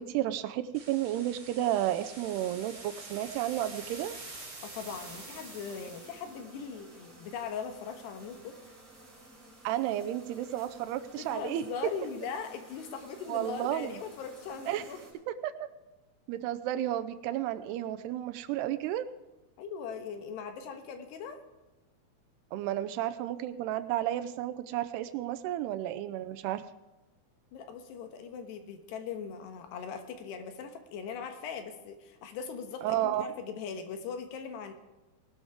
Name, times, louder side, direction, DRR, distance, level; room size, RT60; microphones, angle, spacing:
voice 1, 0.0-4.1 9.6-11.7 13.3-14.0 14.7-14.8 15.4-15.7 16.3-19.1 22.5-26.6 32.8-33.3, right 13 dB, 80° right, 11 dB, 2.6 m, -32 dB
sound 1, 0.7-6.4, right 2 dB, 35° right, 5.8 m, -46 dB
voice 2, 4.6-8.6 11.2-15.0 19.6-21.4 27.5-34.7, left 6 dB, 80° left, 6 dB, 3.4 m, -40 dB
sound 2, 4.9-15.1, right 1 dB, 15° right, 6.2 m, -54 dB
19.5 x 12.5 x 3.6 m, 1.1 s
omnidirectional pair, 4.9 m